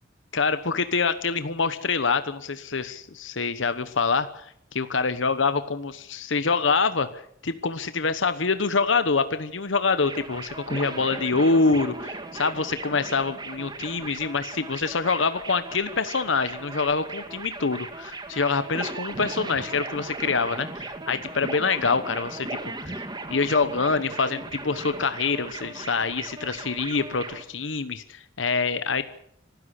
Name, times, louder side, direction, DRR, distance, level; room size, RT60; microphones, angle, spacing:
voice 1, 0.3-7.1 7.4-29.1, left 4 dB, 75° left, 12 dB, 1.1 m, -25 dB
sound 1, 10.0-27.4, right 2 dB, 25° right, 2.0 m, -37 dB
25.0 x 13.0 x 8.2 m, 0.67 s
head